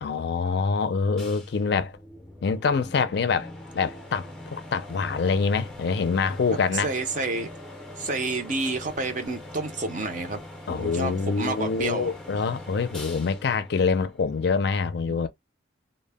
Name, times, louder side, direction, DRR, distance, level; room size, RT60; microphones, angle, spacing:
voice 1, 0.0-2.0 2.4-6.9 10.7-15.3, left 5 dB, 55° left, 0.4 m, -25 dB
sound 1, 1.2-14.7, left 1 dB, 5° left, 0.5 m, -42 dB
voice 2, 6.5-7.5 8.0-10.4 10.7-12.1 15.1-15.3, right 3 dB, 40° right, 0.5 m, -30 dB
2.0 x 2.0 x 3.3 m
head